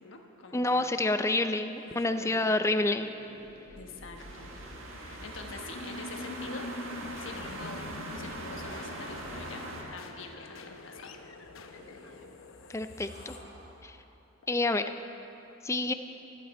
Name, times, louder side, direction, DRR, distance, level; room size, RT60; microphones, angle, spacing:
voice 1, 0.0-0.9 1.9-2.4 3.8-4.5 4.8-6.7 7.2-7.9 8.1-9.6 9.9-11.1, left 3 dB, 70° left, 2 dB, 1.2 m, -45 dB
voice 2, 0.5-3.1 12.7-13.4 13.8-14.0 14.5-14.8 15.6-15.9, left 2 dB, 15° left, 9 dB, 0.4 m, -28 dB
sound 1, 1.7-5.9 6.1-6.2 8.2-10.3 11.7-12.4 13.0-13.9, equal, 50° right, 3.0 m, -53 dB
sound 2, 3.4-14.5, left 2 dB, 85° left, 0.8 m, -45 dB
sound 3, 4.1-9.8, right 1 dB, 80° right, 1.7 m, -42 dB
23.5 x 8.5 x 4.2 m, 3.0 s
head